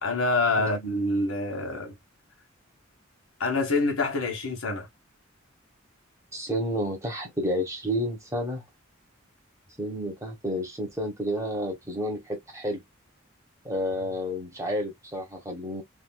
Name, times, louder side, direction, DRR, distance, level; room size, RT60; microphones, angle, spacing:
voice 1, 0.0-1.9 3.4-4.9, left 2 dB, 90° left, 1.2 m, -26 dB
voice 2, 6.3-8.6 9.8-12.8 13.6-15.8, equal, 15° right, 1.0 m, -30 dB
3.4 x 2.5 x 2.2 m
head